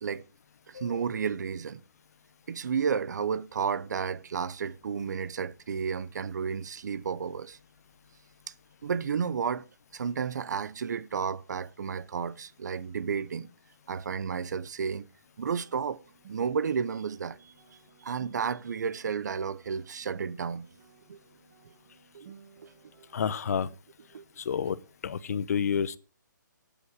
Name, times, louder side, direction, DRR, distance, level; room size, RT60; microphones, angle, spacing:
voice 1, 0.7-1.8 2.5-7.6 8.8-13.5 13.9-15.1 15.4-16.0 16.3-17.5 18.0-20.7 21.1-21.2 22.1-22.3 22.6-22.7 24.1-24.2, right 6 dB, 60° right, 0.7 m, -32 dB
sound 1, 15.5-23.7, right 7 dB, 40° right, 1.8 m, -57 dB
voice 2, 23.1-23.7 24.4-24.8 25.0-26.0, left 7 dB, 50° left, 0.8 m, -29 dB
13.5 x 8.9 x 4.7 m
hypercardioid pair, 160°, 11 cm